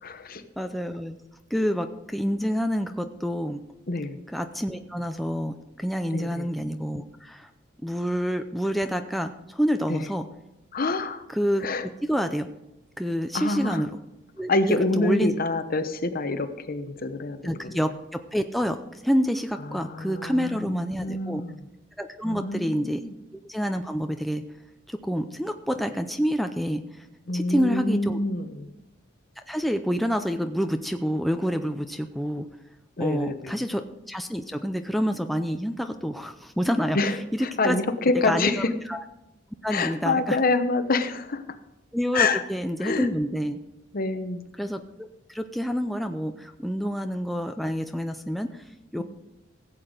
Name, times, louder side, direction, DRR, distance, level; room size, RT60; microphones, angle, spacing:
voice 1, 0.0-0.4 3.9-4.2 6.1-6.5 9.9-10.0 10.7-11.3 11.6-11.9 13.3-13.8 14.5-17.8 19.6-21.6 22.2-23.1 27.3-28.7 33.0-33.6 36.9-38.7 39.7-41.6 42.1-42.4 42.8-43.1 43.9-44.5 49.0-49.1, left 3 dB, 50° left, 9 dB, 0.9 m, -27 dB
voice 2, 0.6-1.2 1.5-3.6 4.3-7.5 7.8-10.2 11.3-12.5 13.0-13.9 14.4-15.3 17.4-21.4 22.0-23.0 23.3-24.4 24.9-27.1 27.3-28.2 29.5-32.5 33.0-37.0 37.3-37.8 38.2-38.5 38.9-39.0 39.6-40.4 41.9-43.6 44.6-48.6 48.9-49.0, equal, ahead, 6 dB, 0.5 m, -28 dB
16.0 x 8.0 x 5.0 m, 0.91 s
head